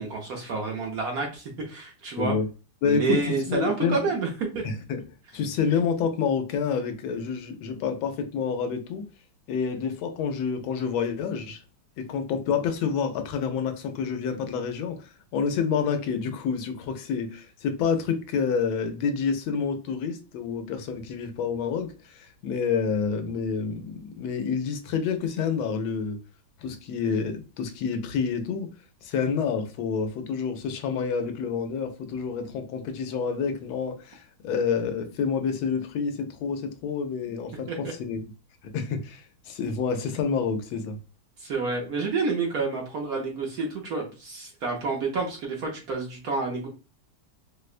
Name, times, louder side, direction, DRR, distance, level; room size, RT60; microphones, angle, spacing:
voice 1, 0.0-2.4 2.8-4.3 4.5-4.6 37.7-37.8 41.4-46.7, right 4 dB, 60° right, 1.1 m, -29 dB
voice 2, 2.8-4.0 4.6-5.0 5.3-9.1 9.5-11.6 12.0-26.2 26.6-28.7 29.0-38.2 38.7-41.0, left 6 dB, 85° left, 1.4 m, -28 dB
4.8 x 2.1 x 2.4 m
omnidirectional pair, 2.1 m